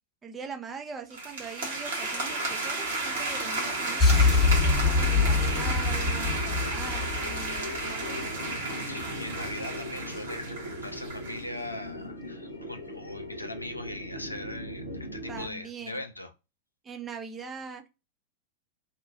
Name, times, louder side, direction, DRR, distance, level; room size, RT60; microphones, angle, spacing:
voice 1, 0.2-4.4 4.8-8.3 15.3-16.0 16.8-17.9, right 5 dB, 20° right, 0.6 m, -42 dB
sound 1, 1.1-11.4, right 2 dB, 60° right, 1.1 m, -33 dB
sound 2, 2.2-15.5, left 1 dB, 85° right, 0.8 m, -40 dB
sound 3, 4.0-8.1, left 4 dB, 15° left, 1.1 m, -24 dB
voice 2, 8.8-16.3, left 1 dB, 85° left, 0.4 m, -40 dB
2.8 x 2.3 x 2.6 m
figure-of-eight pair, 90°, 0 cm